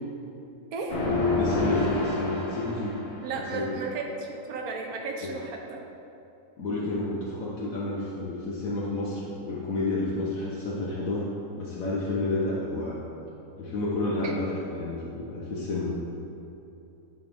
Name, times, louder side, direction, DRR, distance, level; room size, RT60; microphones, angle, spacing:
voice 1, 0.7-1.0 3.2-5.8 14.2-14.4, right 3 dB, 70° right, 2 dB, 1.2 m, -34 dB
sound 1, 0.9-3.3, left 2 dB, 45° left, 1.3 m, -27 dB
voice 2, 1.3-3.0 3.5-3.7 5.2-5.3 6.6-11.3 11.6-13.0 13.6-15.9, left 2 dB, 65° left, -5 dB, 1.2 m, -30 dB
9.4 x 4.6 x 3.5 m, 2.8 s
omnidirectional pair, 1.7 m